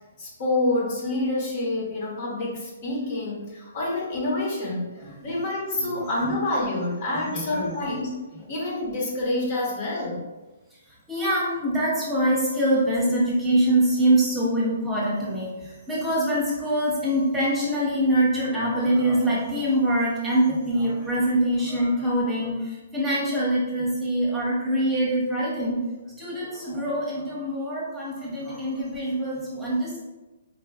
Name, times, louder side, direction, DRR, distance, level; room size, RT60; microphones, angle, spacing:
voice 1, 0.2-8.2 8.5-10.2, left 2 dB, 45° left, -4 dB, 1.1 m, -27 dB
voice 2, 5.0-5.3 5.8-6.3 7.3-7.8 8.3-8.4 11.1-25.8 26.2-30.0, right 1 dB, 15° right, -6 dB, 0.9 m, -24 dB
4.1 x 2.4 x 2.3 m, 1.1 s
hypercardioid pair, 140°, 0 cm